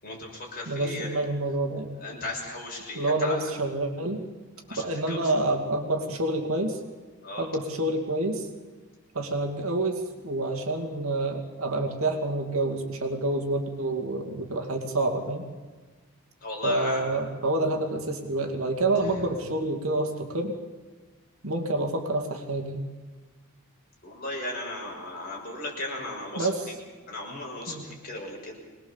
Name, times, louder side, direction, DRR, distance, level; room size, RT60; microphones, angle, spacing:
voice 1, 0.0-1.1 2.0-3.4 4.7-5.2 7.2-7.5 16.4-17.0 24.0-26.5 27.1-28.6, left 2 dB, 40° left, -1 dB, 6.1 m, -36 dB
voice 2, 0.7-1.9 2.9-4.2 4.8-6.8 7.4-8.5 9.1-15.5 16.6-20.5 21.4-22.8 26.4-26.7 27.7-27.8, right 2 dB, 70° right, 2 dB, 2.4 m, -28 dB
24.0 x 20.0 x 7.2 m, 1.3 s
head